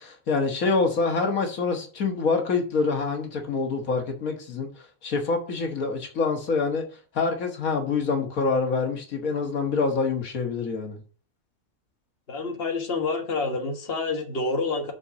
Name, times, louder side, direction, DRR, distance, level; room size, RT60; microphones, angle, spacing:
voice 1, 0.0-4.7 5.0-6.9 7.1-11.0, left 4 dB, 80° left, 1.9 m, -26 dB
voice 2, 12.3-14.9, left 3 dB, 45° left, 1.7 m, -28 dB
6.3 x 5.7 x 6.3 m
omnidirectional pair, 1.5 m